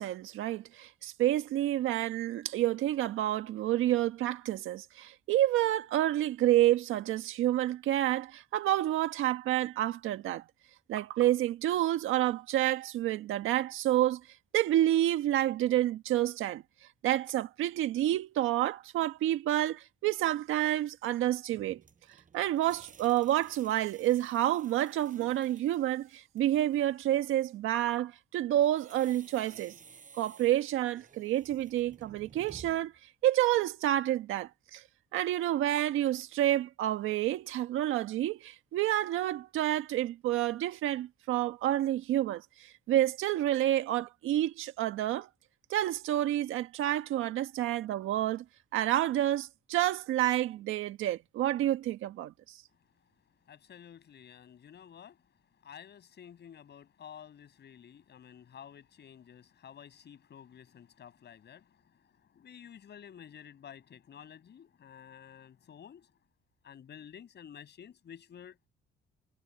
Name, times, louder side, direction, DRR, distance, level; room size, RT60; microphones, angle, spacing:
voice 1, 0.0-10.4 10.9-14.2 14.5-16.6 17.0-21.8 22.3-29.7 30.2-32.9 33.2-34.8 35.1-45.3 45.7-48.4 48.7-52.6, right 13 dB, 90° right, 1.6 m, -29 dB
sound 1, 21.5-26.9 28.6-33.0, right 6 dB, 40° right, 6.7 m, -56 dB
voice 2, 53.5-55.2 55.6-66.1 66.6-68.7, left 8 dB, 60° left, 7.1 m, -51 dB
cardioid pair, 90°, 20 cm